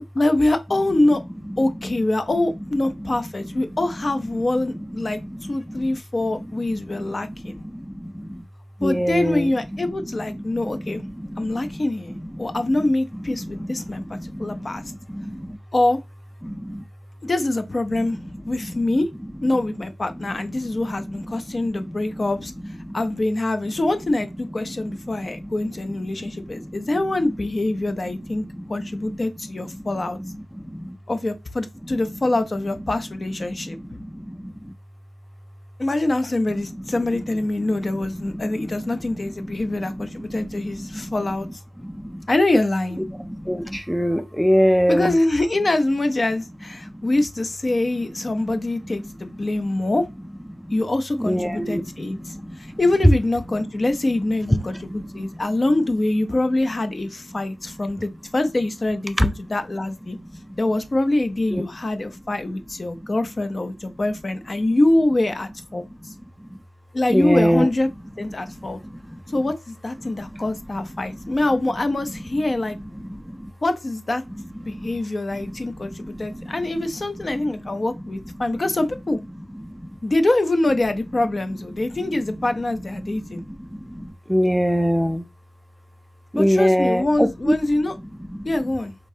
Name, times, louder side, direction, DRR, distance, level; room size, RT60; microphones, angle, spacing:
voice 1, 0.1-1.2 1.6-5.2 5.5-7.6 8.8-11.0 11.4-14.0 14.4-14.8 15.7-16.0 17.2-18.2 18.5-19.1 19.4-30.2 31.1-33.8 35.8-41.5 42.3-43.0 44.9-50.1 50.7-52.2 52.6-60.2 60.6-65.9 66.9-67.9 68.2-68.8 69.3-72.8 73.6-74.2 74.7-79.2 80.0-83.4 86.4-87.9 88.4-89.0, left 2 dB, 35° left, 0.7 m, -24 dB
voice 2, 4.7-8.4 8.8-15.6 16.4-16.8 18.0-19.0 19.5-19.6 20.1-22.3 22.8-23.0 23.6-23.7 24.8-25.5 25.9-26.7 27.8-29.2 29.6-29.9 30.2-31.0 31.8-32.1 33.4-34.7 36.6-36.9 37.1-37.2 37.6-41.2 41.8-42.3 43.1-45.2 46.8-47.1 48.3-49.1 50.5-50.8 51.2-52.8 53.6-53.9 54.5-55.4 58.0-58.1 59.2-59.5 60.2-60.6 61.5-61.7 62.9-63.1 66.1-66.6 67.1-67.7 68.4-69.4 70.0-70.4 70.7-71.3 72.7-73.5 74.5-75.0 75.3-77.1 77.3-77.8 79.5-80.0 81.9-82.5 83.0-85.3 86.3-87.5 88.0-88.7, equal, ahead, 0.4 m, -28 dB
5.2 x 3.7 x 2.8 m
wide cardioid pair, 100°, 0 cm